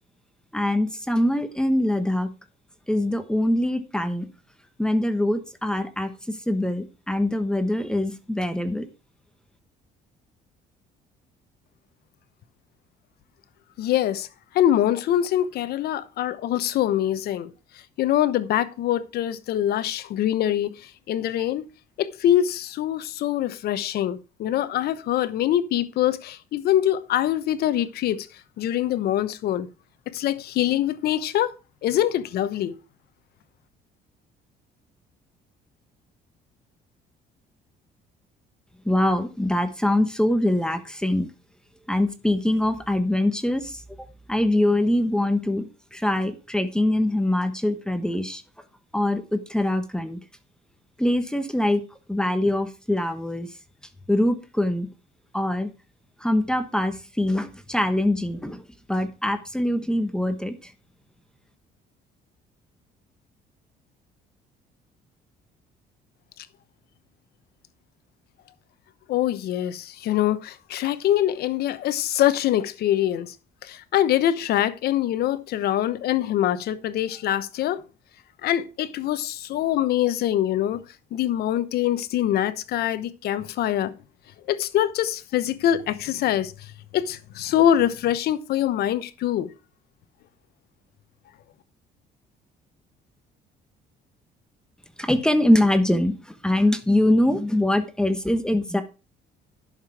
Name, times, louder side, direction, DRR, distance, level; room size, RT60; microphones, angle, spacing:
voice 1, 0.5-2.3 2.9-4.3 4.8-8.9 38.8-41.3 41.9-43.8 44.3-48.4 48.9-50.2 51.0-53.5 54.1-54.9 55.3-55.7 56.2-58.6 58.9-60.7 95.0-96.1 96.4-98.8, left 1 dB, 5° left, 1.2 m, -23 dB
voice 2, 13.8-14.3 14.5-17.5 18.0-21.6 22.0-28.3 28.6-29.7 30.1-31.5 31.8-32.8 69.1-73.3 73.6-77.8 78.4-80.8 81.1-83.9 84.5-89.5, left 11 dB, 70° left, 1.0 m, -24 dB
11.0 x 6.7 x 4.7 m
cardioid pair, 110°, 17 cm